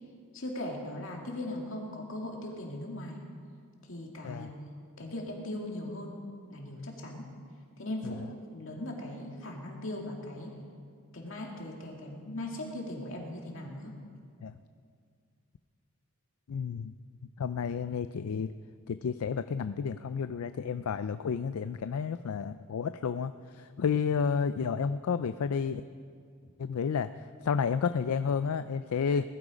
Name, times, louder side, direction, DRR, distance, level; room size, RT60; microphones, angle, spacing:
voice 1, 0.3-3.2 3.8-4.5 5.0-6.2 6.5-7.2 7.8-8.2 8.5-10.5 11.1-13.9 26.4-26.5, left 1 dB, 60° left, 0 dB, 2.5 m, -39 dB
voice 2, 16.5-16.9 17.4-18.5 18.9-25.8 26.6-29.2, left 6 dB, 75° left, 12 dB, 0.4 m, -31 dB
20.0 x 12.5 x 5.1 m, 2.1 s
head